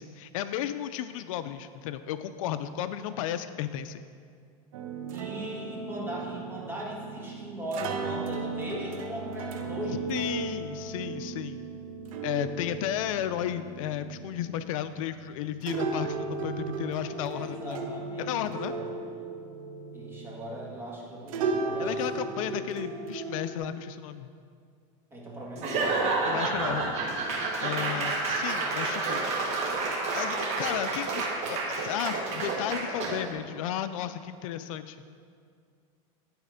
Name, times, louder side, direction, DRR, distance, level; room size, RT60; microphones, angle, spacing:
voice 1, 0.0-4.0 10.1-11.6 12.2-17.9 18.2-18.7 21.8-24.3 26.2-26.9 27.6-29.3 30.1-35.0, left 10 dB, 80° left, 12 dB, 0.4 m, -34 dB
sound 1, 4.7-21.0 21.3-23.6, right 4 dB, 85° right, 0.8 m, -35 dB
voice 2, 5.1-10.1 17.3-19.2 19.9-22.3 25.1-26.2, equal, 15° right, -4 dB, 1.8 m, -39 dB
Laughter / Applause / Crowd, 25.6-33.3, right 3 dB, 40° right, 1.3 m, -29 dB
10.5 x 4.2 x 5.1 m, 2.2 s
supercardioid pair, 135°, 17 cm